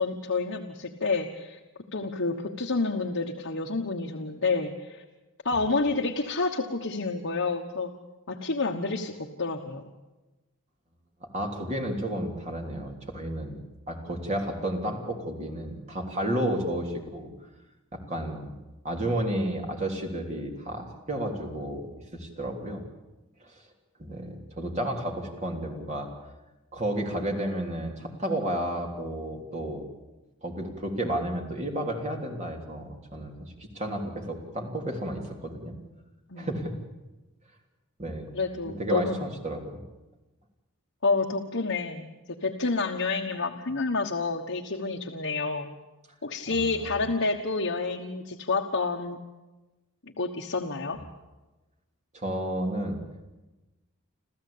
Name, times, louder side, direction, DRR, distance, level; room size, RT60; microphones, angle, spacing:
voice 1, 0.0-1.6 1.9-5.0 5.4-7.9 8.3-9.8 36.3-36.5 38.3-39.1 41.0-45.7 46.2-49.2 50.2-51.0, left 3 dB, 60° left, 1 dB, 1.3 m, -29 dB
voice 2, 11.2-13.6 13.9-17.3 17.9-18.5 18.8-22.8 23.4-23.6 24.0-26.1 26.7-29.8 30.4-35.7 36.4-36.7 38.0-38.4 38.8-39.8 46.5-47.0 52.1-53.0, right 1 dB, 30° right, 2 dB, 3.3 m, -32 dB
27.5 x 14.5 x 8.6 m, 1.1 s
head